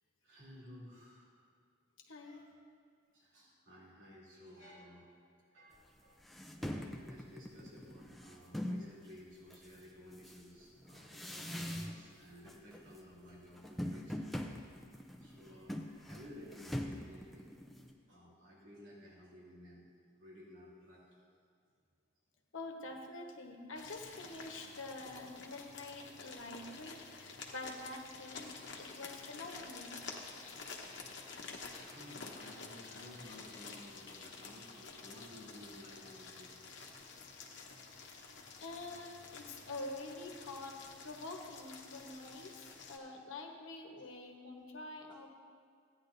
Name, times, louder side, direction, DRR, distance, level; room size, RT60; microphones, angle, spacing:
voice 1, 0.2-1.3 2.2-2.4 3.1-5.1 5.5-6.2 6.5-14.3 14.6-14.7 15.2-17.5 18.1-19.9 20.1-21.0 31.3-36.8, left 1 dB, 70° right, -7 dB, 2.9 m, -55 dB
voice 2, 2.1-2.4 22.5-30.0 38.6-40.8 41.0-45.3, left 2 dB, 85° left, 2 dB, 1.1 m, -47 dB
sound 1, 5.8-5.9 6.2-8.9 9.5-12.2 12.4-13.0 13.3-17.9, equal, ahead, 0.5 m, -43 dB
sound 2, 23.8-43.0, left 4 dB, 60° left, 1.0 m, -50 dB
15.0 x 9.7 x 2.6 m, 2.2 s
head